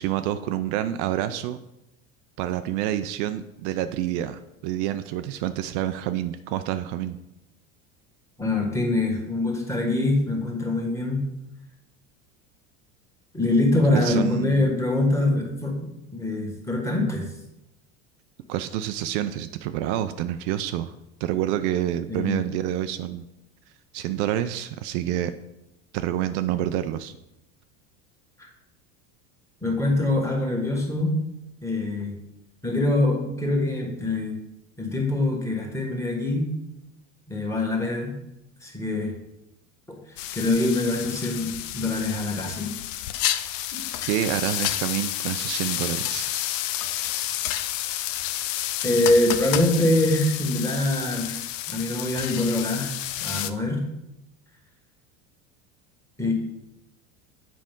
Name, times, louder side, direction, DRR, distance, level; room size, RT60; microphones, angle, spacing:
voice 1, 0.0-1.6 2.4-7.2 13.9-14.7 18.5-20.9 21.2-23.2 23.9-25.3 25.9-27.2 44.1-46.3, right 12 dB, 65° right, 10 dB, 0.5 m, -28 dB
voice 2, 8.4-11.2 13.3-17.2 22.1-22.4 28.4-28.5 29.6-31.1 31.6-32.2 32.6-34.3 34.8-36.5 37.3-38.1 38.6-39.1 39.9-40.0 40.3-42.7 43.7-43.8 48.8-51.4 51.7-52.9 53.2-53.8 56.2-56.3, left 2 dB, 5° left, 0 dB, 1.6 m, -24 dB
sound 1, 40.2-53.5, left 13 dB, 75° left, 0.5 m, -30 dB
7.6 x 5.1 x 3.6 m, 0.87 s
supercardioid pair, 105°, 38 cm